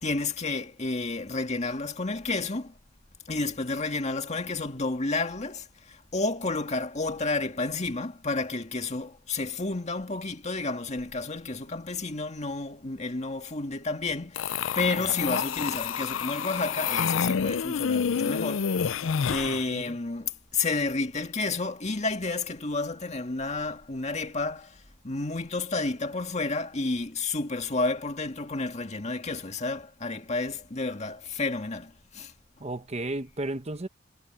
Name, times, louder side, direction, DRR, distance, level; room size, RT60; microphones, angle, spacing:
voice 1, 0.0-2.7 3.3-5.6 6.1-14.4 14.8-18.6 19.3-24.7 25.0-31.9 32.2-32.3, left 3 dB, 35° left, 1.9 m, -30 dB
sound 1, 14.4-19.6, left 6 dB, 85° left, 0.5 m, -28 dB
voice 2, 19.5-20.0 32.6-33.9, right 2 dB, 35° right, 1.0 m, -34 dB
head